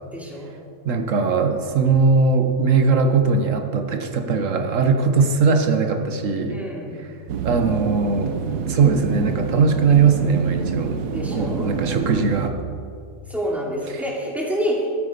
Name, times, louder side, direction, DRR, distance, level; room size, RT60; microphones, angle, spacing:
voice 1, 0.1-0.5 6.5-7.0 11.1-11.7 13.3-14.9, equal, ahead, -4 dB, 2.7 m, -27 dB
voice 2, 0.8-6.6 7.0-7.1 7.4-8.4 8.7-11.0 11.3-12.6 13.9-14.0, right 5 dB, 55° right, 6 dB, 1.3 m, -20 dB
sound 1, 7.3-12.5, right 6 dB, 80° right, 1.3 m, -27 dB
12.5 x 12.5 x 5.2 m, 2.4 s
omnidirectional pair, 1.7 m